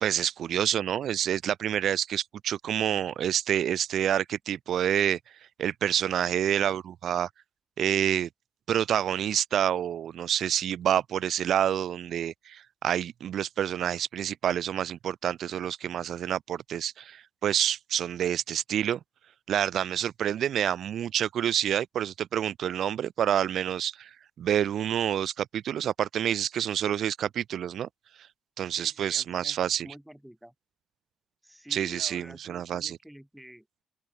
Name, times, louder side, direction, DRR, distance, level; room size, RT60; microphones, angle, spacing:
voice 1, 0.0-5.2 5.6-7.3 7.8-8.3 8.7-19.0 19.5-24.1 24.4-27.9 28.6-29.9 31.7-33.0, right 10 dB, 65° right, 1.1 m, -28 dB
voice 2, 28.7-29.6 29.8-30.5 31.4-33.8, equal, 5° right, 3.4 m, -49 dB
open air
cardioid pair, 95°, 0 cm